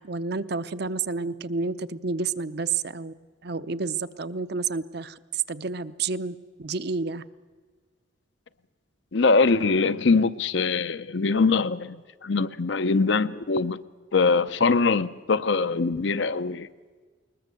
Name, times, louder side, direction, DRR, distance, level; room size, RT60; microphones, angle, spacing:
voice 1, 0.0-3.1 3.4-7.2, right 4 dB, 55° right, 14 dB, 0.7 m, -30 dB
voice 2, 9.1-13.8 14.1-16.7, left 4 dB, 65° left, 14 dB, 0.7 m, -23 dB
21.0 x 21.0 x 7.7 m, 1.5 s
head